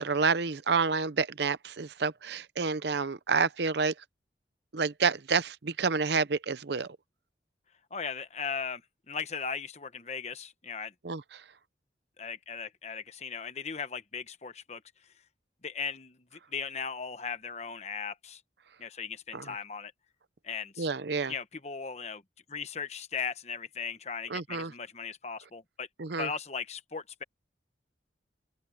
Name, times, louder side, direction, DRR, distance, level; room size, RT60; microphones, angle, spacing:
voice 1, 0.0-3.9 4.7-7.0 11.0-11.4 19.3-19.5 20.8-21.3 24.3-24.7 26.0-26.3, right 5 dB, 70° right, 0.7 m, -29 dB
voice 2, 7.9-8.8 9.1-10.9 12.2-14.8 15.6-18.4 18.8-19.9 20.4-20.9 21.3-22.2 22.5-25.9 26.2-27.2, left 6 dB, 35° left, 1.1 m, -37 dB
open air
head